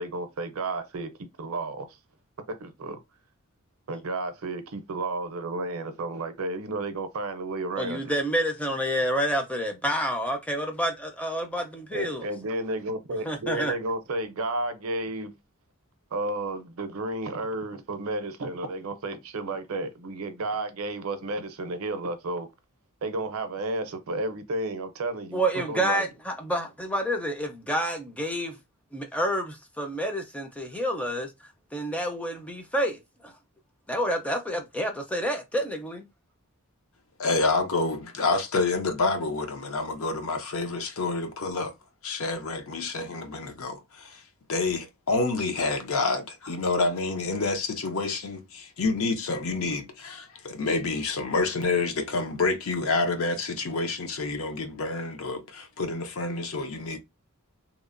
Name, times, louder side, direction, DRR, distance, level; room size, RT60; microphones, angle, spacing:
voice 1, 0.0-1.9 2.5-3.0 3.9-8.0 11.9-15.3 16.1-22.5 23.0-25.4 25.7-26.1, right 2 dB, 65° right, 0.5 m, -32 dB
voice 2, 7.8-12.3 13.3-13.7 25.3-28.6 28.9-31.3 31.7-33.3 33.9-36.1, equal, 5° left, 0.4 m, -29 dB
voice 3, 37.2-41.7 42.0-44.2 44.5-57.0, left 3 dB, 65° left, 0.6 m, -28 dB
2.9 x 2.1 x 2.4 m
head